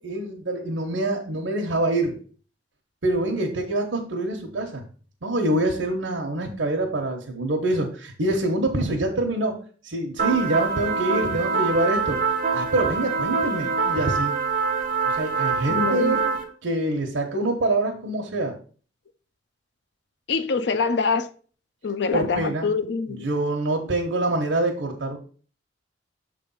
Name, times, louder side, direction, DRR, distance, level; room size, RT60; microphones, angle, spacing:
voice 1, 0.0-2.1 3.0-4.8 5.2-9.6 9.8-12.2 12.5-14.3 15.1-16.2 16.6-18.6 22.1-22.7 23.1-25.2, right 2 dB, 80° right, 1.0 m, -25 dB
sound 1, 10.2-16.4, right 5 dB, 45° right, 1.2 m, -25 dB
voice 2, 15.7-16.2 20.3-21.3 21.8-23.3, left 4 dB, 65° left, 0.5 m, -25 dB
6.8 x 3.3 x 5.4 m
head